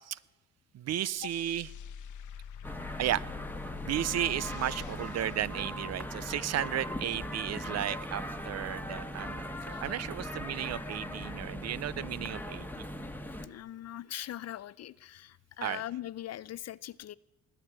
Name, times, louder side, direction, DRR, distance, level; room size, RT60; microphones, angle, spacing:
voice 1, 0.7-1.7 3.0-3.2 3.8-12.8 15.6-15.8, right 11 dB, 55° right, 21 dB, 0.6 m, -34 dB
sound 1, 1.0-6.3, left 8 dB, 75° left, 1.1 m, -45 dB
sound 2, 2.6-13.5, left 1 dB, 5° left, 1.5 m, -39 dB
voice 2, 13.4-17.2, left 13 dB, 55° left, 20 dB, 0.6 m, -41 dB
20.5 x 8.1 x 8.7 m, 1.0 s
cardioid pair, 90°, 30 cm